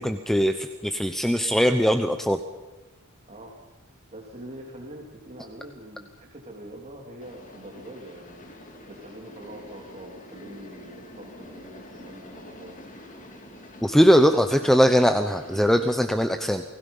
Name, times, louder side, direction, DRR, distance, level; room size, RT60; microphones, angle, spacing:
voice 1, 0.0-2.4 13.8-16.6, equal, ahead, 7 dB, 0.8 m, -20 dB
voice 2, 4.1-8.5 8.9-12.8, right 1 dB, 35° right, -1 dB, 3.3 m, -43 dB
sound 1, 7.2-16.0, left 1 dB, 35° left, 2.8 m, -46 dB
28.5 x 19.5 x 5.6 m, 1.1 s
head